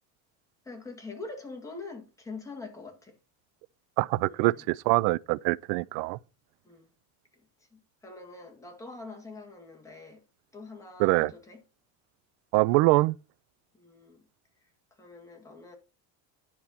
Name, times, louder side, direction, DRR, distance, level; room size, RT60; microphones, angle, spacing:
voice 1, 0.6-3.2 4.2-4.7 6.6-6.9 7.7-10.2 10.5-11.6 13.7-14.3 15.0-15.8, left 3 dB, 5° left, 2.0 m, -44 dB
voice 2, 4.0-6.2 11.0-11.3 12.5-13.2, right 21 dB, 85° right, 0.5 m, -24 dB
10.5 x 4.7 x 5.6 m
cardioid pair, 160°, 42 cm